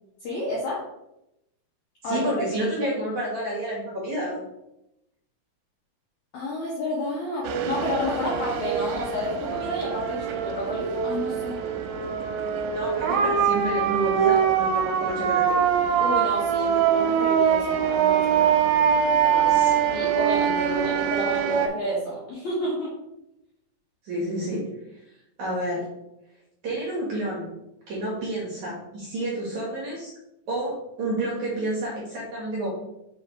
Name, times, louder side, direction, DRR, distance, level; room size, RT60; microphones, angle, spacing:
voice 1, 0.2-0.8 2.0-3.0 6.3-11.6 16.0-18.5 19.9-22.9, left 1 dB, 70° left, -6 dB, 1.8 m, -30 dB
voice 2, 2.0-4.4 12.7-15.6 19.2-19.8 24.0-24.6 25.4-25.9 26.6-27.5 27.9-30.1 30.5-32.7, right 1 dB, 60° right, -5 dB, 2.2 m, -30 dB
sound 1, 7.4-21.7, right 8 dB, 90° right, 2.9 m, -23 dB
6.2 x 3.5 x 4.7 m, 0.88 s
omnidirectional pair, 5.2 m